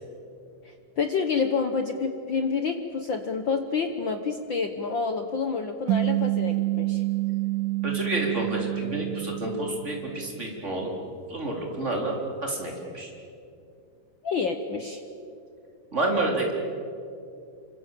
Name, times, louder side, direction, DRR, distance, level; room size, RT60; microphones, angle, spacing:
voice 1, 0.6-7.0 14.2-15.0, left 5 dB, 75° left, 6 dB, 1.1 m, -28 dB
sound 1, 5.9-10.5, right 18 dB, 75° right, 2.5 m, -28 dB
voice 2, 7.8-10.9 11.3-12.1 12.4-13.1 15.9-16.5, right 2 dB, 20° right, 0 dB, 4.2 m, -29 dB
27.5 x 25.0 x 7.6 m, 2.7 s
omnidirectional pair, 3.8 m